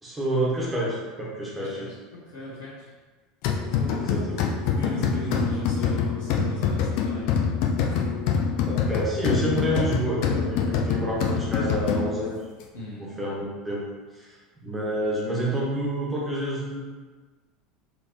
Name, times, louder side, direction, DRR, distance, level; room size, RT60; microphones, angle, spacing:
voice 1, 0.0-1.8 4.0-4.4 8.7-12.4 13.0-13.9 14.1-14.4 14.6-16.8, right 1 dB, 15° right, -5 dB, 1.2 m, -28 dB
voice 2, 1.6-2.9 3.7-4.2 4.6-7.3 7.8-8.1 12.7-13.1, left 2 dB, 75° left, -11 dB, 1.2 m, -35 dB
sound 1, 3.4-12.3, left 6 dB, 55° left, 0.5 m, -25 dB
4.2 x 3.1 x 3.0 m, 1.3 s
figure-of-eight pair, 75°, 0 cm